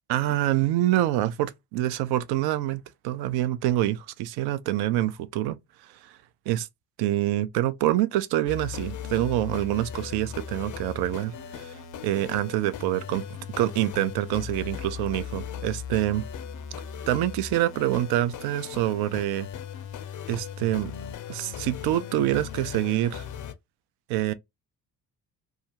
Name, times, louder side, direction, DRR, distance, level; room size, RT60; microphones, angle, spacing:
voice 1, 0.1-5.6 6.0-6.1 6.5-6.7 7.0-11.7 12.0-16.2 17.1-19.5 20.3-20.9 21.3-23.2 24.1-24.3, right 14 dB, 50° right, 0.5 m, -26 dB
sound 1, 8.5-23.5, left 8 dB, 40° left, 0.6 m, -38 dB
2.5 x 2.4 x 2.8 m
figure-of-eight pair, 40°, 49 cm